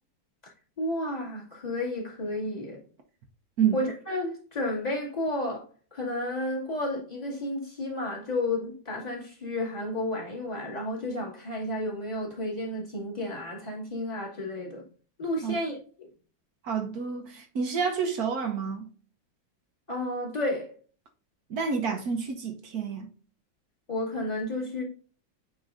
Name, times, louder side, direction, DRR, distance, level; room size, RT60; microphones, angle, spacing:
voice 1, 0.8-2.8 3.7-5.6 5.9-14.9 15.2-16.1 19.9-20.7 23.9-24.8, left 1 dB, 20° left, 2.5 m, -32 dB
voice 2, 16.6-18.9 21.5-23.1, right 6 dB, 60° right, 1.2 m, -29 dB
9.1 x 4.6 x 2.6 m
omnidirectional pair, 2.1 m